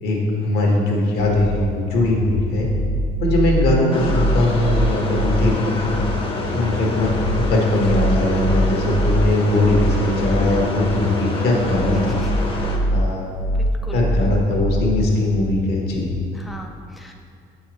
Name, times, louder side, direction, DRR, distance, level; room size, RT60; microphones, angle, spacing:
voice 1, 0.0-2.7 3.2-6.0 6.5-12.2 12.9-13.3 13.9-16.1, left 1 dB, 70° left, -1 dB, 1.3 m, -20 dB
sound 1, 1.2-16.2, equal, 15° right, 0.8 m, -24 dB
sound 2, 3.9-12.8, left 2 dB, 30° left, 0.8 m, -27 dB
voice 2, 11.9-12.3 13.2-14.0 16.3-17.1, left 1 dB, ahead, 1 dB, 0.4 m, -41 dB
6.8 x 5.5 x 3.1 m, 2.4 s
cardioid pair, 110°, 17 cm